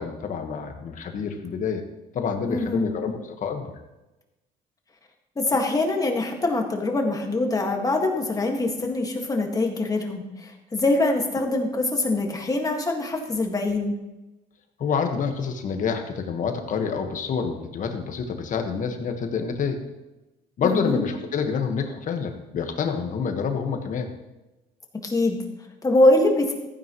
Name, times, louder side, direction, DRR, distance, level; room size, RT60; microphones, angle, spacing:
voice 1, 0.0-1.8 2.1-3.7 14.8-19.8 20.6-24.1, left 6 dB, 50° left, 5 dB, 1.5 m, -27 dB
voice 2, 2.5-3.2 5.4-14.0 20.6-21.0 25.0-25.4 25.8-26.5, left 2 dB, 20° left, 2 dB, 1.8 m, -23 dB
14.5 x 9.4 x 3.1 m, 1.0 s
cardioid pair, 110°, 17 cm